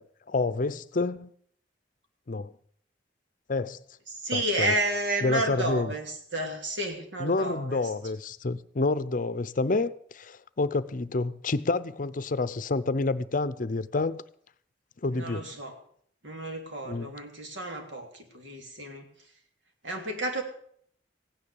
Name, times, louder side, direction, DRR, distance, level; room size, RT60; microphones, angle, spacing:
voice 1, 0.0-1.3 2.3-2.5 3.5-3.8 4.3-4.7 5.2-5.9 7.2-14.2 15.0-15.5 16.9-17.1, left 3 dB, 45° left, 0.6 m, -28 dB
voice 2, 4.1-7.8 15.1-15.7 16.2-19.1 19.8-20.4, right 1 dB, 85° right, 3.1 m, -31 dB
16.0 x 9.9 x 7.0 m
head